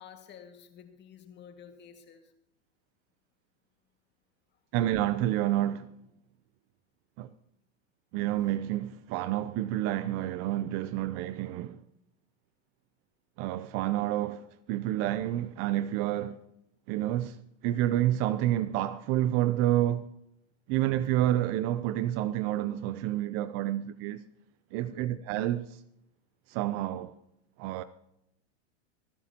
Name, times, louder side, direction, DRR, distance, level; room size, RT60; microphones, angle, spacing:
voice 1, 0.0-2.3 11.0-11.1 24.9-25.2, left 7 dB, 30° left, 2.0 m, -51 dB
voice 2, 4.7-5.9 7.2-7.3 8.1-11.8 13.4-16.4 16.9-17.4 17.6-20.1 20.7-24.2 24.7-25.8 26.5-27.1 27.6-27.8, right 13 dB, 40° right, 0.5 m, -29 dB
25.5 x 10.5 x 2.9 m
hypercardioid pair, 120°, 37 cm